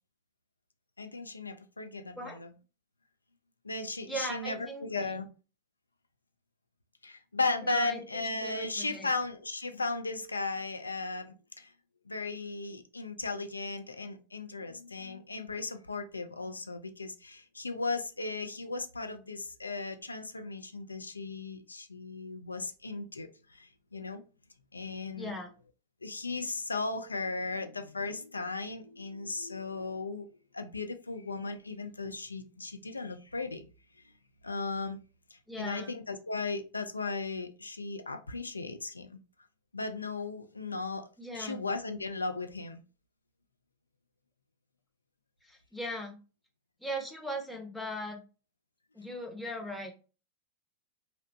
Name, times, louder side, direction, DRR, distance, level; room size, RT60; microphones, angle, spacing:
voice 1, 1.0-2.5 3.6-5.3 7.0-11.7 12.1-24.2 24.7-25.4 26.0-30.3 30.5-33.7 34.4-35.0 35.3-39.2 39.7-41.1 41.3-42.8, left 3 dB, 80° left, 0.3 m, -36 dB
voice 2, 4.1-5.2 7.6-9.1 25.2-25.5 35.5-35.9 41.2-41.6 45.4-46.2 46.8-48.2 48.9-49.9, equal, ahead, 0.6 m, -39 dB
2.7 x 2.0 x 2.6 m
figure-of-eight pair, 90°, 0 cm